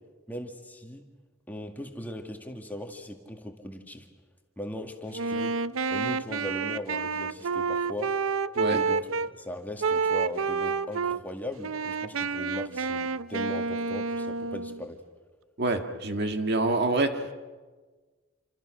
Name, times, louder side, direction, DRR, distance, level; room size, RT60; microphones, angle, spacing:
voice 1, 0.3-1.0 1.5-4.1 4.6-5.5 5.9-8.1 8.7-15.0, left 1 dB, 10° left, 3 dB, 2.0 m, -39 dB
Wind instrument woodwind instrument, 5.1-9.3 9.8-11.2 11.6-14.8, right 5 dB, 85° right, 0.7 m, -29 dB
voice 2, 15.6-17.2, right 2 dB, 55° right, 6 dB, 1.7 m, -26 dB
28.0 x 26.0 x 6.3 m, 1.4 s
head